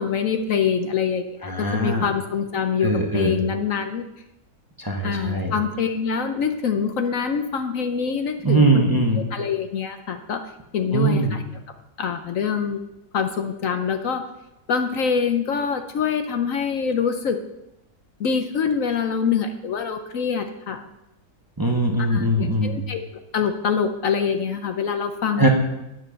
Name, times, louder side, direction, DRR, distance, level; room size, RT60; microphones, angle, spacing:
voice 1, 0.0-4.0 5.0-8.8 9.3-10.4 10.7-11.4 12.0-12.8 13.1-14.2 14.7-17.4 18.2-20.8 22.0-23.0 23.3-25.5, left 6 dB, 60° left, 7 dB, 1.1 m, -25 dB
voice 2, 1.5-2.0 2.8-3.4 4.8-5.5 8.4-9.2 10.9-11.3 21.6-22.8 25.4-25.5, right 2 dB, 15° right, 2 dB, 1.0 m, -21 dB
9.4 x 7.6 x 6.4 m, 0.89 s
omnidirectional pair, 1.7 m